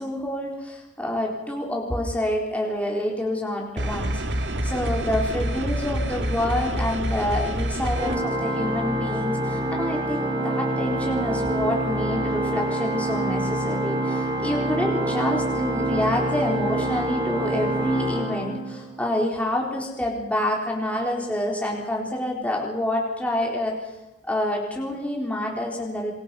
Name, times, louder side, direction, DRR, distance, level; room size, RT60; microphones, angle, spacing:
voice 1, 0.0-23.8 24.2-26.1, left 1 dB, 10° left, -1 dB, 4.0 m, -27 dB
sound 1, 3.8-8.2, right 1 dB, 65° right, 2.2 m, -27 dB
Organ, 7.9-19.1, right 1 dB, 30° right, 3.2 m, -26 dB
27.0 x 23.0 x 5.9 m, 0.99 s
head